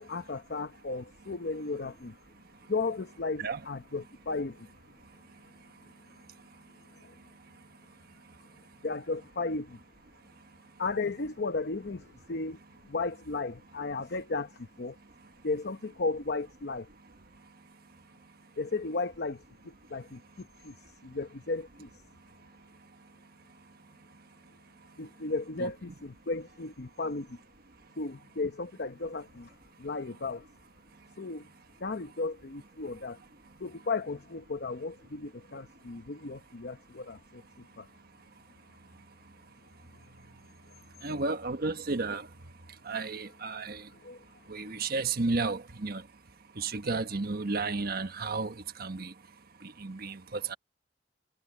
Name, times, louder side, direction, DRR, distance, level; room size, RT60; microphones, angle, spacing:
voice 1, 0.0-2.2 2.7-4.7 7.0-7.2 8.8-9.8 10.8-12.6 12.8-15.0 15.4-16.9 18.6-20.7 21.0-21.9 25.0-27.4 28.0-29.5 29.8-30.5 31.2-31.5 31.8-33.2 33.6-37.9 44.0-44.2, left 3 dB, 60° left, 0.9 m, -35 dB
voice 2, 41.0-42.3 42.8-43.8 44.5-46.0 46.6-49.1 49.6-50.6, right 3 dB, 60° right, 1.3 m, -32 dB
head